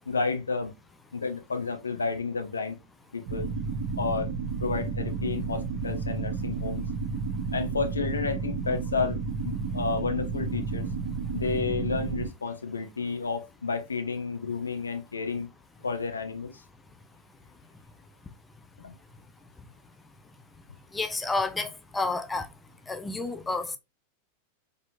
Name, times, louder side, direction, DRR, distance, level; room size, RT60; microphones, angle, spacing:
voice 1, 0.1-0.7 1.1-2.8 3.1-3.5 4.0-4.3 4.6-6.8 7.5-9.2 9.4-10.9 11.3-15.5 15.8-16.6 18.8-19.0, left 4 dB, 75° left, 0.9 m, -31 dB
sound 1, 3.3-12.3, right 4 dB, 55° right, 1.0 m, -32 dB
voice 2, 20.9-22.5 22.9-23.8, left 3 dB, 10° left, 0.5 m, -30 dB
4.4 x 3.5 x 2.5 m
figure-of-eight pair, 90°, 0 cm